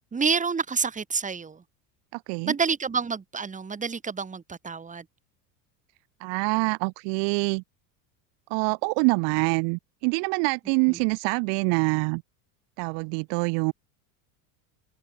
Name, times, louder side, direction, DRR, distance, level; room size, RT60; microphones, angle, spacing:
voice 1, 0.1-1.6 2.5-5.0 10.9-11.0, right 5 dB, 15° right, 1.7 m, -28 dB
voice 2, 2.1-2.5 6.2-7.6 8.5-12.2 12.8-13.7, right 40 dB or more, 65° right, 1.2 m, -25 dB
supercardioid pair, 100°, 46 cm